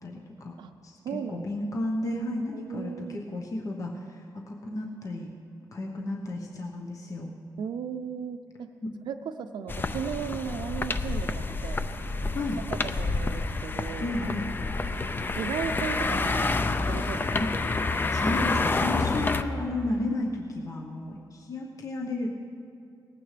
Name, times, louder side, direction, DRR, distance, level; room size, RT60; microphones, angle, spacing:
voice 1, 0.0-0.6 0.8-1.0 1.3-5.3 5.7-7.3 12.3-12.6 14.0-14.5 17.4-17.5 18.1-22.3, left 2 dB, 45° left, 0 dB, 1.1 m, -33 dB
voice 2, 1.0-1.5 2.5-3.2 7.6-8.4 9.1-11.8 12.4-12.5 13.0-14.3 14.6-14.8 15.4-16.4 16.9-17.4, right 7 dB, 90° right, 8 dB, 0.4 m, -35 dB
sound 1, 9.7-19.4, left 3 dB, 25° left, 0.5 m, -28 dB
19.5 x 15.5 x 3.3 m, 2.4 s
wide cardioid pair, 135°, 8 cm